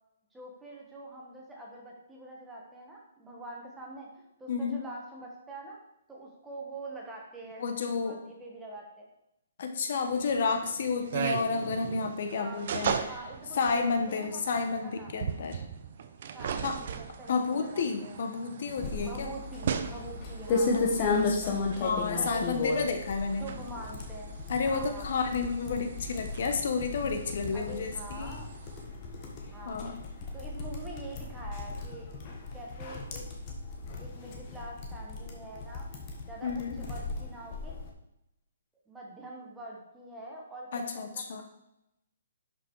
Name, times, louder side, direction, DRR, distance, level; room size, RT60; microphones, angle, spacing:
voice 1, 0.3-5.8 6.1-7.6 7.9-9.1 12.3-14.4 14.8-15.1 16.3-18.2 19.0-21.3 22.1-22.8 23.4-24.3 24.6-25.1 25.6-25.8 27.5-28.5 29.5-29.8 30.1-32.1 32.5-33.3 34.0-36.0 36.3-37.7 38.9-41.4, right 2 dB, 5° right, -3 dB, 1.5 m, -45 dB
voice 2, 4.5-4.8 7.6-8.2 9.6-13.0 13.5-15.6 16.6-16.8 17.3-19.3 20.7-23.4 24.5-28.4 29.7-29.9 36.4-36.8 40.7-41.4, left 4 dB, 45° left, 6 dB, 1.1 m, -31 dB
sound 1, 10.1-28.8, right 7 dB, 40° right, 0.7 m, -39 dB
sound 2, 18.8-37.9, left 3 dB, 25° left, 1.4 m, -35 dB
11.5 x 5.9 x 4.7 m, 0.86 s
hypercardioid pair, 175°, 0 cm